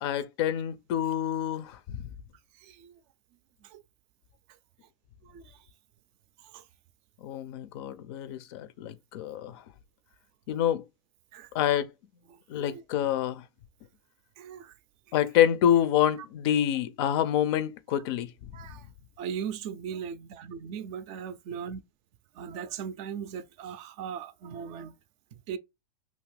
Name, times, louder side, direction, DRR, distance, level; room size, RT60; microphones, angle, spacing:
voice 1, 0.0-2.0 7.2-9.6 10.5-10.8 11.5-11.9 12.5-13.4 15.1-18.3, left 10 dB, 55° left, 0.4 m, -27 dB
voice 2, 2.6-3.0 3.6-3.8 5.2-5.7 6.4-6.6 11.3-11.5 12.3-12.8 14.4-14.7 15.1-15.2 18.5-18.9 19.2-21.8 22.3-24.9 25.5-25.6, right 7 dB, 40° right, 0.4 m, -39 dB
2.7 x 2.4 x 3.2 m
supercardioid pair, 135°, 15 cm